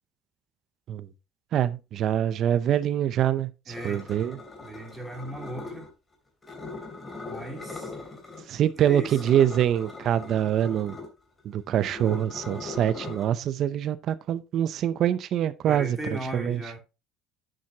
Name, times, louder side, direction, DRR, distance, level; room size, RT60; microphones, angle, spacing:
voice 1, 1.5-4.4 8.5-11.0 11.4-16.6, right 10 dB, 45° right, 0.6 m, -25 dB
sound 1, 3.7-5.9 6.4-8.5 8.8-13.3, left 3 dB, 15° left, 2.9 m, -40 dB
voice 2, 3.7-4.2 4.6-5.9 7.3-7.9 8.8-9.2 15.7-16.8, right 1 dB, 5° right, 3.2 m, -37 dB
10.5 x 7.5 x 2.8 m
cardioid pair, 150°, 0 cm